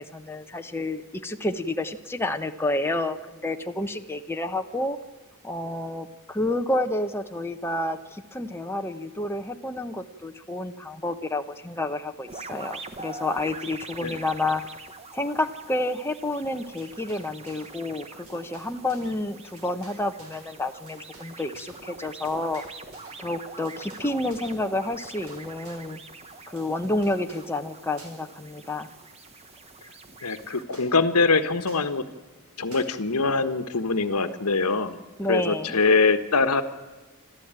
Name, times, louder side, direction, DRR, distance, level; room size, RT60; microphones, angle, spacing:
voice 1, 0.0-5.0 5.4-14.6 15.1-22.6 23.2-26.0 26.5-28.9 35.2-35.8, left 2 dB, 10° left, 5 dB, 1.0 m, -29 dB
sound 1, 12.3-30.6, right 3 dB, 30° right, 1.3 m, -44 dB
sound 2, 16.6-17.8 18.1-25.9 26.3-27.5 28.0-28.4 28.6-29.6 30.1-30.2 30.4-30.5 30.7-30.9 31.6-31.9 32.7-32.9, right 2 dB, 65° right, 5.5 m, -53 dB
voice 2, 30.2-32.0 32.6-35.0 35.3-36.6, left 4 dB, 85° left, 11 dB, 1.3 m, -23 dB
27.5 x 13.5 x 8.9 m, 1.3 s
head